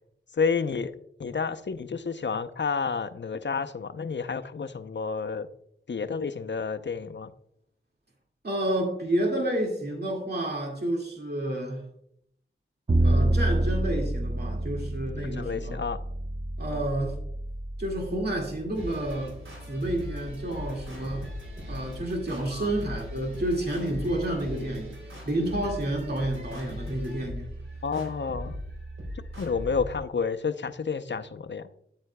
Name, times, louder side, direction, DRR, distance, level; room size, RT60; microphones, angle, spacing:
voice 1, 0.4-0.9 1.2-5.5 5.9-7.3 13.0-13.4 15.2-16.0 16.7-16.9 22.5-22.7 27.8-28.6 29.4-31.6, left 5 dB, 60° left, 10 dB, 0.6 m, -30 dB
voice 2, 8.4-11.8 13.0-15.8 16.6-17.2 17.8-19.4 19.7-21.3 21.7-24.9 25.3-27.5, right 1 dB, 50° right, 0 dB, 2.1 m, -30 dB
Bowed string instrument, 12.9-19.1, right 1 dB, 30° right, 0.9 m, -28 dB
sound 1, 18.7-30.0, left 1 dB, 70° right, 3.5 m, -39 dB
9.6 x 8.8 x 2.2 m, 0.71 s
cardioid pair, 50°, 21 cm